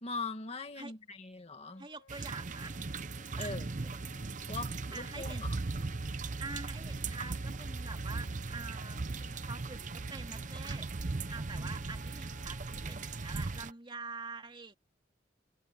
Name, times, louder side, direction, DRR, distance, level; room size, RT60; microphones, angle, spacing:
voice 1, 0.0-1.9 3.4-3.7 4.5-5.6, left 3 dB, 35° left, 2.0 m, -41 dB
Wind instrument woodwind instrument, 1.7-13.8, left 4 dB, 85° left, 1.9 m, -58 dB
voice 2, 1.8-2.7 3.4-3.6 4.9-5.4 6.4-14.8, right 3 dB, 25° right, 2.8 m, -46 dB
sound 1, 2.1-13.7, right 3 dB, 40° right, 0.6 m, -38 dB
head